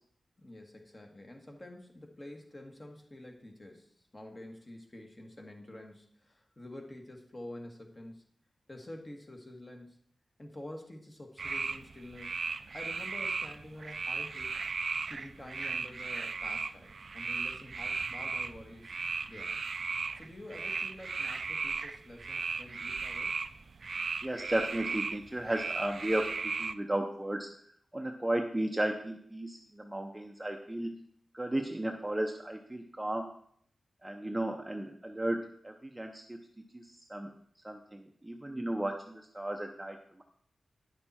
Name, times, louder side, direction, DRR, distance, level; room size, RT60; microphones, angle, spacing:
voice 1, 0.4-8.2 8.7-10.0 10.4-14.6 15.1-18.9 19.3-19.6 20.1-23.4, left 1 dB, 25° left, 2 dB, 1.5 m, -48 dB
sound 1, 11.4-26.7, right 4 dB, 55° right, 0.4 m, -36 dB
voice 2, 24.2-26.3 26.6-27.5 27.9-31.0 31.3-33.3 34.0-36.4 36.7-37.3 37.6-40.2, right 1 dB, 10° right, 3 dB, 0.7 m, -34 dB
9.7 x 6.8 x 4.2 m, 0.65 s
wide cardioid pair, 110°, 0 cm